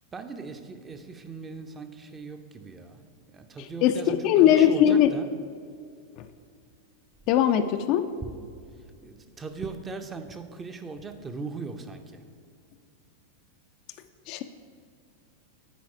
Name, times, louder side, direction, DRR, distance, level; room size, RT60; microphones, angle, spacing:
voice 1, 0.1-5.3 8.2-8.3 9.0-12.2, right 4 dB, 20° right, 7 dB, 0.6 m, -39 dB
voice 2, 3.8-5.1 6.2-6.3 7.3-8.1 14.3-14.4, left 10 dB, 40° left, 9 dB, 0.3 m, -20 dB
9.3 x 4.7 x 4.7 m, 2.2 s
figure-of-eight pair, 90°, 0 cm